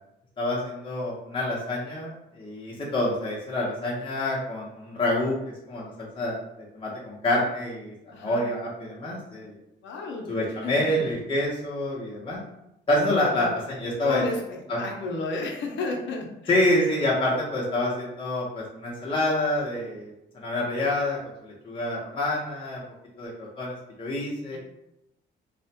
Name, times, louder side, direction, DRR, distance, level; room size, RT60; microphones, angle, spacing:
voice 1, 0.4-5.4 5.7-9.6 10.3-12.4 12.9-14.2 14.7-14.9 16.5-22.8 23.2-24.6, left 1 dB, 25° left, -4 dB, 0.6 m, -27 dB
voice 2, 8.1-8.4 9.8-10.2 10.6-11.0 13.3-13.5 14.0-14.4 14.8-16.3 24.5-24.6, left 2 dB, 70° left, 1 dB, 0.6 m, -32 dB
2.4 x 2.1 x 2.7 m, 0.83 s
cardioid pair, 90°, 20 cm